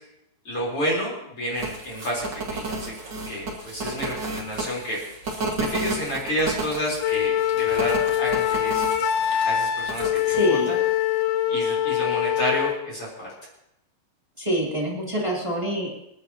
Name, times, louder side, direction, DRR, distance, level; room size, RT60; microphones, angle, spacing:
voice 1, 0.4-2.9 3.3-5.0 5.6-9.1 9.5-10.8 11.5-13.3, equal, 30° left, -3 dB, 4.3 m, -30 dB
sound 1, 1.5-10.5, right 2 dB, 35° right, 4.6 m, -45 dB
sound 2, 1.6-1.7 2.2-4.6 5.2-6.8 7.7-8.9 9.9-10.1, right 3 dB, 75° right, 1.0 m, -30 dB
Wind instrument woodwind instrument, 7.0-12.8, left 10 dB, 80° left, 3.2 m, -23 dB
voice 2, 10.3-10.7 14.4-15.9, equal, 15° right, -3 dB, 1.1 m, -25 dB
27.5 x 11.0 x 2.9 m, 0.82 s
omnidirectional pair, 5.3 m